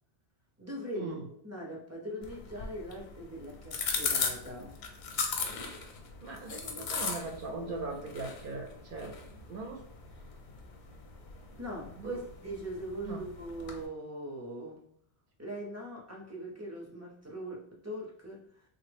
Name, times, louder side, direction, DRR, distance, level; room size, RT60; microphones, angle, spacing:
voice 1, 0.6-1.2 1.4-4.8 11.6-14.8 15.4-18.6, equal, 20° right, -2 dB, 0.4 m, -41 dB
sound 1, 2.2-13.9, left 5 dB, 85° left, 0.9 m, -38 dB
voice 2, 6.2-9.1 9.5-9.8 12.0-12.2 13.0-13.2, right 3 dB, 60° right, 1 dB, 0.7 m, -39 dB
3.3 x 2.0 x 3.3 m, 0.66 s
omnidirectional pair, 1.1 m